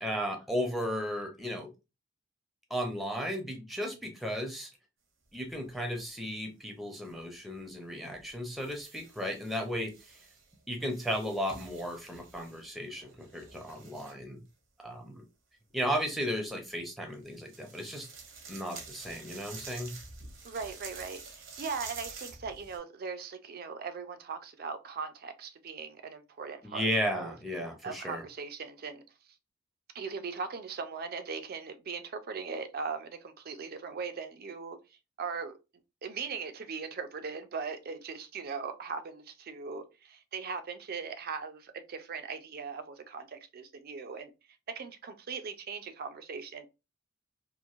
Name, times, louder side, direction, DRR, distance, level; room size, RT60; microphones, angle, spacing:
voice 1, 0.0-1.7 2.7-4.7 5.3-9.9 10.7-14.4 14.8-15.2 15.7-18.1 18.5-19.9 26.6-28.2, equal, ahead, 0.6 m, -35 dB
sound 1, 5.2-6.0 7.0-7.2 8.1-10.5 10.9-14.3 17.1-22.8, right 4 dB, 75° right, 0.9 m, -48 dB
voice 2, 20.4-27.4 27.8-29.0 29.9-34.8 35.2-35.5 36.0-44.3 44.7-46.7, right 5 dB, 50° right, 0.4 m, -39 dB
3.0 x 2.5 x 2.4 m
head